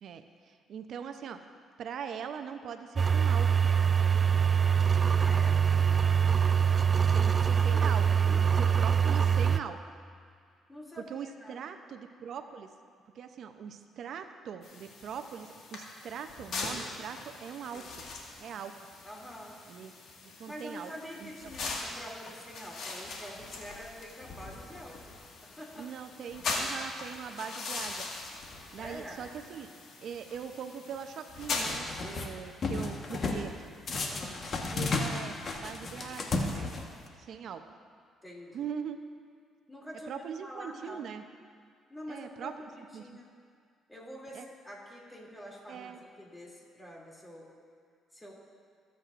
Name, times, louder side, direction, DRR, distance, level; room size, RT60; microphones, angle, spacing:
voice 1, 0.0-1.4 1.8-3.5 7.1-10.0 11.0-12.7 13.1-18.0 18.4-18.8 19.7-19.9 20.2-20.9 21.2-21.5 25.8-28.1 28.7-29.7 30.0-33.7 34.7-36.7 37.2-37.6 38.5-39.0 40.1-41.2 42.1-43.2 44.3-44.5 45.7-46.0, right 7 dB, 65° right, 8 dB, 0.6 m, -41 dB
sound 1, 3.0-9.6, right 7 dB, 35° right, 0.3 m, -24 dB
voice 2, 5.2-5.7 7.2-7.9 8.2-8.5 10.7-11.6 17.7-17.9 19.0-19.6 20.5-25.0 25.4-25.9 28.8-29.2 33.9-34.4 38.2-38.7 39.7-41.1 41.9-43.3 43.9-47.5 48.1-48.5, equal, 15° left, -3 dB, 2.7 m, -46 dB
sound 2, 14.6-31.8, left 3 dB, 70° left, 1.7 m, -41 dB
sound 3, 31.7-32.3 32.6-33.5 33.9-37.1, left 3 dB, 50° left, 1.3 m, -33 dB
19.0 x 8.2 x 2.5 m, 2.2 s
supercardioid pair, 75°, 0 cm